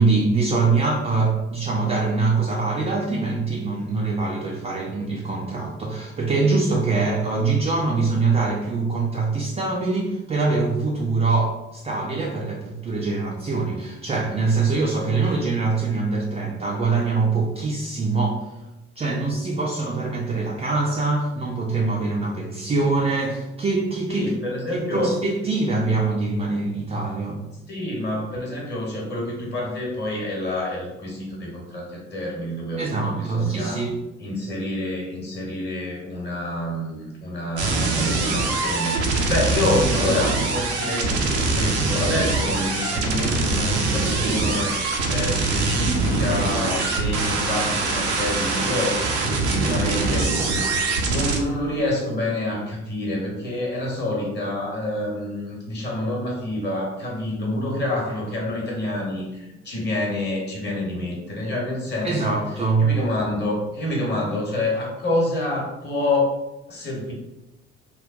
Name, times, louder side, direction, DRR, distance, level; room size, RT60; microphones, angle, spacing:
voice 1, 0.0-18.5 19.0-24.3 24.7-27.4 32.8-34.0 62.0-62.9, right 3 dB, 20° right, -3 dB, 0.5 m, -23 dB
voice 2, 24.1-25.2 27.7-33.8 34.2-50.4 51.0-62.4 62.8-66.3 66.7-67.1, left 1 dB, 30° left, -2 dB, 1.1 m, -27 dB
sound 1, 37.6-51.4, right 3 dB, 75° right, 0.6 m, -23 dB
3.7 x 2.2 x 2.5 m, 0.98 s
figure-of-eight pair, 55°, 34 cm